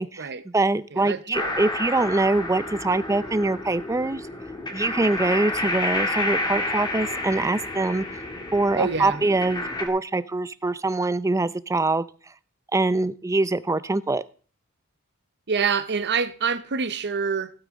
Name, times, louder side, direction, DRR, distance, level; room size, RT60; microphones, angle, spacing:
voice 1, 0.0-4.2 4.7-8.0 8.5-12.1 12.7-14.2, right 2 dB, 15° right, 0.4 m, -24 dB
voice 2, 0.9-1.5 8.7-9.2 15.5-17.5, right 5 dB, 50° right, 0.8 m, -26 dB
sound 1, 1.3-9.9, left 2 dB, 20° left, 1.7 m, -30 dB
16.0 x 8.9 x 3.7 m
head